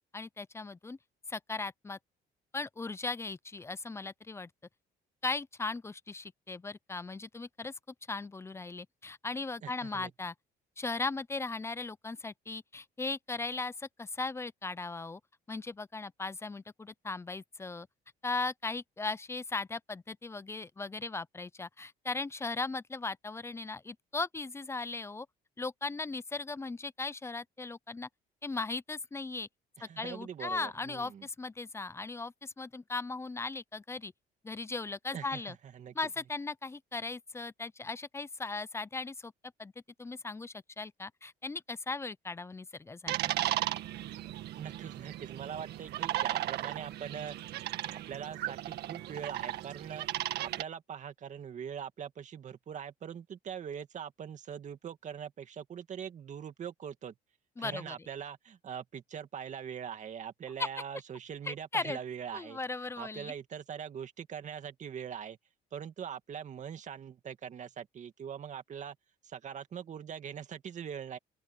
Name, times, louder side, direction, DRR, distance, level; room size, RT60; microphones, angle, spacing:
voice 1, 0.1-1.0 1.3-2.0 2.5-4.5 5.2-7.7 8.1-10.3 10.8-15.2 15.5-17.9 18.2-25.3 25.6-28.1 28.4-29.5 29.8-34.1 34.4-35.6 35.9-39.3 39.6-39.7 40.0-43.1 57.6-58.0 60.6-60.7 61.5-62.0 62.3-63.3, left 3 dB, 15° left, 0.6 m, -38 dB
voice 2, 9.6-10.1 29.8-31.3 35.1-35.9 44.6-57.1 57.6-62.6 63.0-65.4 65.7-69.0 69.2-71.2, right 8 dB, 45° right, 2.2 m, -42 dB
sound 1, 43.1-50.6, right 13 dB, 75° right, 1.7 m, -36 dB
open air
cardioid pair, 110°, 17 cm